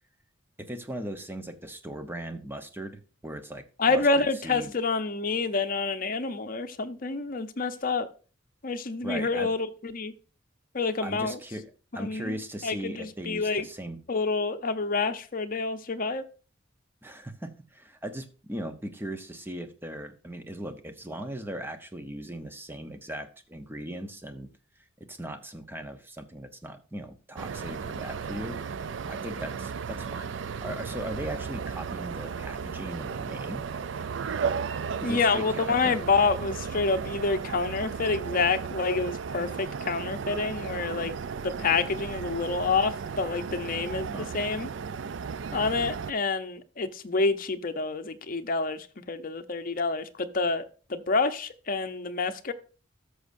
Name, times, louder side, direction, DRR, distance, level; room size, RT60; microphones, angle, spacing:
voice 1, 0.6-4.7 9.0-9.5 11.0-14.0 17.0-24.5 25.0-30.4 30.6-33.7 35.0-36.0 44.1-44.3, right 1 dB, 10° right, 0.8 m, -38 dB
voice 2, 3.8-8.1 8.6-10.1 10.7-11.4 11.9-12.4 12.6-13.7 14.1-16.2 35.0-41.2 41.4-44.7 45.5-52.5, left 4 dB, 45° left, 0.7 m, -28 dB
sound 1, 27.4-46.1, right 6 dB, 65° right, 0.4 m, -35 dB
13.5 x 6.4 x 2.6 m
head